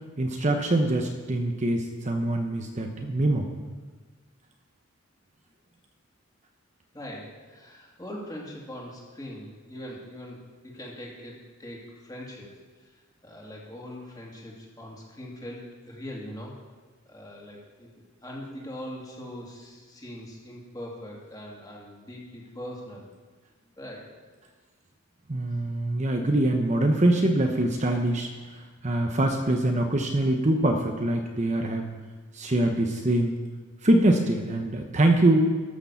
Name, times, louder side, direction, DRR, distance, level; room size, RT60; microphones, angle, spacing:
voice 1, 0.2-3.5 25.3-28.3 28.8-31.9 32.4-33.3 33.8-35.4, right 1 dB, 35° right, 4 dB, 0.8 m, -24 dB
voice 2, 6.9-12.5 12.8-16.5 17.1-17.9 18.2-23.1 23.8-24.1, equal, 20° left, -3 dB, 2.5 m, -41 dB
13.0 x 6.7 x 7.0 m, 1.4 s
head